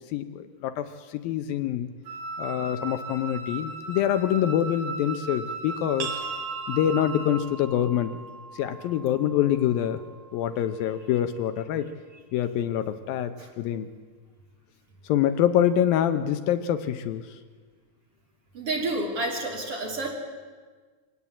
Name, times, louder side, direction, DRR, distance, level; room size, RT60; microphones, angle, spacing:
voice 1, 0.1-0.9 1.2-1.9 2.4-6.1 6.7-8.1 8.6-10.0 10.3-11.9 12.3-13.9 15.1-17.2, left 10 dB, 75° left, 9 dB, 2.5 m, -25 dB
Wind instrument woodwind instrument, 2.1-7.4, right 2 dB, 75° right, 5.2 m, -37 dB
sound 1, 6.0-11.4, right 5 dB, 60° right, 4.1 m, -41 dB
voice 2, 18.5-20.1, right 2 dB, 40° right, 0 dB, 3.9 m, -29 dB
24.0 x 18.0 x 8.5 m, 1.5 s
omnidirectional pair, 4.5 m